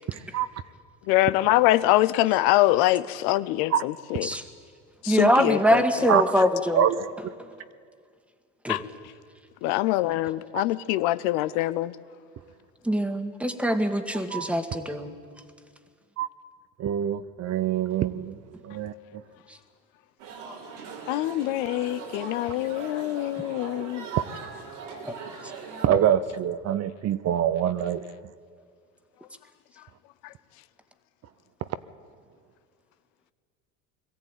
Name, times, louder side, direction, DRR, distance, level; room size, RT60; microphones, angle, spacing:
voice 1, 0.1-0.5 3.7-3.8 6.1-6.4 6.7-7.1 10.5-10.6 14.3-14.5 16.2-16.3 16.8-18.4 18.6-19.2 24.1-24.2 25.8-28.0, right 10 dB, 45° right, 0.8 m, -25 dB
voice 2, 1.1-4.3 5.0-6.1 8.7-8.8 9.6-11.9 21.1-24.1 30.2-30.3, left 16 dB, 70° left, 0.7 m, -24 dB
voice 3, 5.1-6.8 8.6-8.8 12.8-15.1, equal, 5° right, 1.7 m, -23 dB
sound 1, 20.2-25.9, right 5 dB, 90° right, 3.5 m, -40 dB
21.5 x 14.0 x 9.1 m
supercardioid pair, 85°, 36 cm